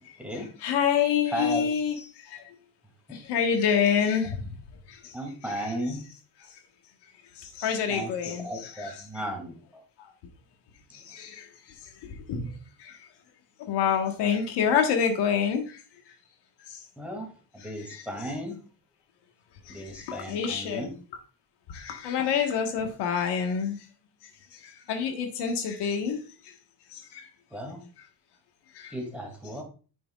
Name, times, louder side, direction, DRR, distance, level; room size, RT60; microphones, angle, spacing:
voice 1, 0.6-2.5 3.1-4.5 4.9-5.1 5.5-5.7 7.4-9.2 10.0-10.1 10.9-11.5 12.0-12.5 12.8-13.0 13.7-15.8 16.7-16.8 17.6-18.1 19.7-20.8 21.7-23.8 24.6-26.2 26.9-27.3 28.7-28.9, left 7 dB, 90° left, 4 dB, 1.5 m, -27 dB
voice 2, 1.3-1.7 3.1-3.2 5.1-6.0 7.9-9.8 17.0-18.6 19.7-20.9 27.5-27.8 28.9-29.6, equal, 5° right, 2 dB, 2.5 m, -35 dB
9.2 x 6.1 x 2.4 m, 0.35 s
cardioid pair, 115°, 39 cm